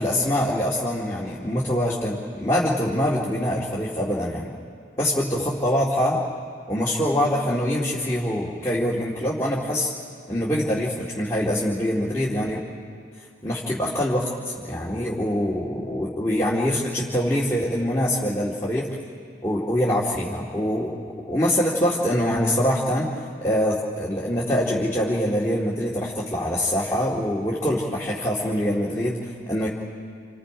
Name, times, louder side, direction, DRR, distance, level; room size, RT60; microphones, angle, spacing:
voice 1, 0.0-4.5 5.0-6.2 6.7-9.9 10.3-12.6 13.4-18.9 19.4-23.1 23.4-29.2 29.5-29.7, equal, 15° left, -6 dB, 2.2 m, -24 dB
29.0 x 28.0 x 5.0 m, 2.3 s
head